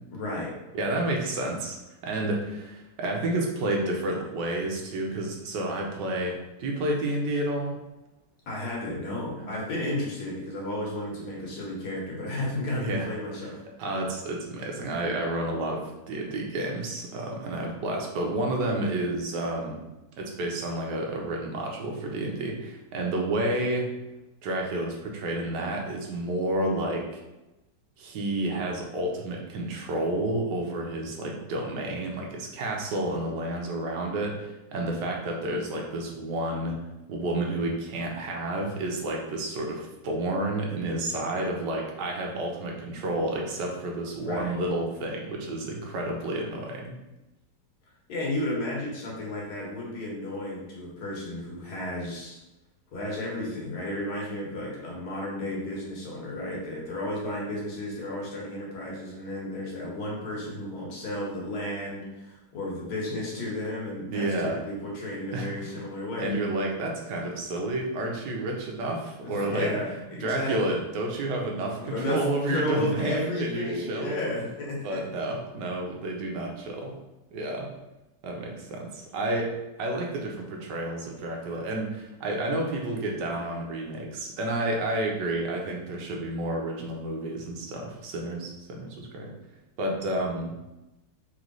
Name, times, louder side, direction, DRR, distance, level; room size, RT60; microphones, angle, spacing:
voice 1, 0.1-0.5 8.5-13.6 44.2-44.5 48.1-52.4 52.9-66.3 69.2-70.8 71.8-75.0, left 1 dB, 65° left, -3 dB, 1.7 m, -33 dB
voice 2, 0.7-1.8 2.0-7.8 9.4-9.6 12.8-13.1 13.8-19.8 20.2-23.9 24.4-27.2 28.0-36.8 37.1-47.0 64.1-64.6 65.3-65.8 66.2-69.7 70.2-74.2 74.8-76.9 77.3-77.7 78.2-89.3 89.8-90.5, right 1 dB, 90° right, 0 dB, 1.4 m, -30 dB
3.8 x 3.2 x 3.9 m, 1.0 s
omnidirectional pair, 1.8 m